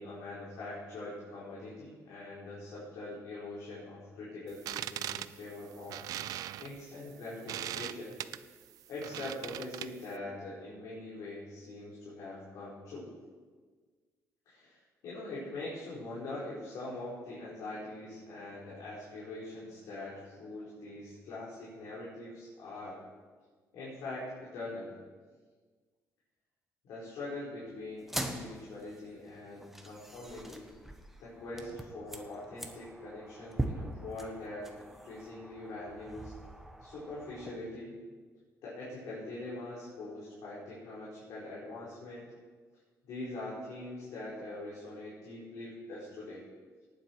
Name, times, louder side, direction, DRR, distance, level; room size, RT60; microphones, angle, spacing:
voice 1, 0.0-6.0 6.6-8.2 8.9-13.1 14.5-23.0 23.7-24.9 26.8-30.7 31.2-36.3 36.8-38.0 38.6-42.3 43.0-46.4, left 2 dB, 70° left, -8 dB, 4.6 m, -43 dB
sound 1, 4.5-10.1, right 12 dB, 75° right, 0.5 m, -40 dB
sound 2, 28.0-37.6, right 1 dB, 5° right, 1.1 m, -42 dB
18.5 x 9.2 x 4.7 m, 1.5 s
cardioid pair, 145°, 6 cm